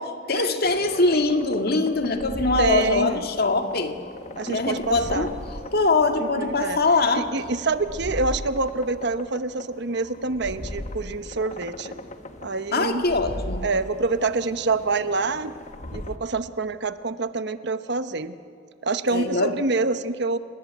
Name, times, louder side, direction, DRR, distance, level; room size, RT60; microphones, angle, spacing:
voice 1, 0.0-4.1 4.5-7.3 12.7-13.7 19.1-19.5, left 3 dB, 55° left, 6 dB, 2.0 m, -23 dB
sound 1, 0.6-16.2, left 1 dB, 35° left, 1.2 m, -38 dB
voice 2, 2.6-3.3 4.4-5.3 6.2-6.8 7.1-11.9 12.4-13.1 13.6-15.5 15.9-18.3 18.8-20.4, right 3 dB, 60° right, 11 dB, 1.0 m, -26 dB
29.5 x 18.5 x 9.3 m, 2.4 s
head